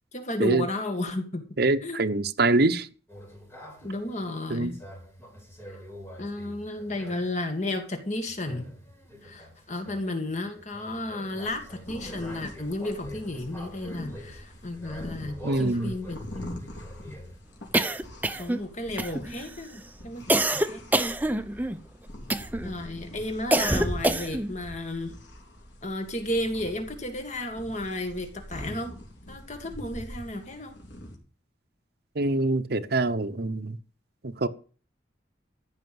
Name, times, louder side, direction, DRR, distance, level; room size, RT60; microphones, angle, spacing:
voice 1, 0.1-1.5 1.8-2.0 3.8-4.8 5.7-5.8 6.2-8.7 9.2-16.6 17.0-17.2 18.4-20.9 22.6-25.2 25.8-28.9 29.3-30.8, left 1 dB, 40° left, 2.0 m, -33 dB
voice 2, 1.6-2.9 4.5-4.7 15.4-15.9 32.1-33.8 34.2-34.5, right 2 dB, 55° right, 0.9 m, -24 dB
sound 1, 3.1-7.4 8.2-17.4, equal, 10° left, 4.8 m, -46 dB
sound 2, 11.4-31.1, left 1 dB, 65° left, 3.7 m, -44 dB
sound 3, 17.7-18.6 19.0-19.5 20.3-21.8 22.3-22.7 23.5-24.5, right 1 dB, 10° right, 0.7 m, -25 dB
15.0 x 5.7 x 7.8 m
head